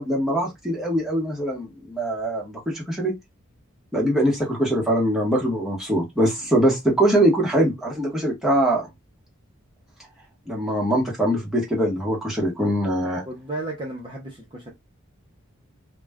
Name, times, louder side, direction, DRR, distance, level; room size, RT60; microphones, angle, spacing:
voice 1, 0.0-3.1 3.9-8.9 10.5-13.2, right 1 dB, ahead, 0.9 m, -22 dB
voice 2, 13.3-14.7, right 2 dB, 20° right, 0.6 m, -33 dB
2.3 x 2.1 x 3.4 m
head